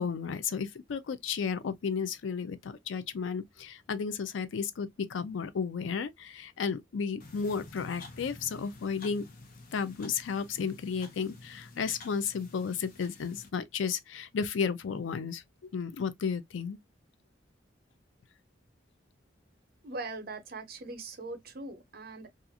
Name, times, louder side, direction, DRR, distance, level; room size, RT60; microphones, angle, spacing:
voice 1, 0.0-9.3 9.7-15.4 15.7-16.8, left 6 dB, 90° left, 0.4 m, -33 dB
sound 1, 7.2-13.5, left 3 dB, 50° left, 0.7 m, -50 dB
voice 2, 19.8-22.3, right 3 dB, 55° right, 0.7 m, -41 dB
2.4 x 2.4 x 2.7 m
head